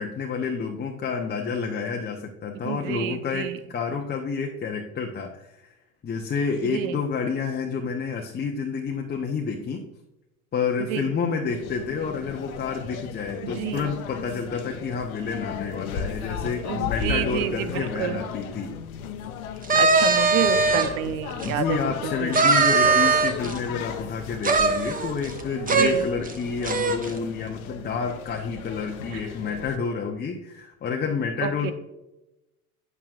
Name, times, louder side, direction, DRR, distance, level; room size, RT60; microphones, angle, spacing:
voice 1, 0.0-5.7 6.0-9.9 10.5-18.8 21.4-31.7, left 5 dB, 25° left, 1 dB, 0.8 m, -29 dB
voice 2, 2.6-3.6 6.6-7.0 10.9-11.1 13.4-13.9 16.6-18.2 19.7-22.4 25.7-26.1 29.1-29.2 31.4-31.7, right 10 dB, 60° right, 11 dB, 0.9 m, -30 dB
sound 1, 11.5-29.8, left 7 dB, 70° left, 1.0 m, -36 dB
sound 2, 19.6-20.9 21.4-21.5 22.3-23.6 24.4-25.4 25.7-25.9 26.2-26.3 26.6-27.1, right 4 dB, 20° right, 1.1 m, -20 dB
9.3 x 8.6 x 2.5 m, 0.95 s
hypercardioid pair, 75°, 44 cm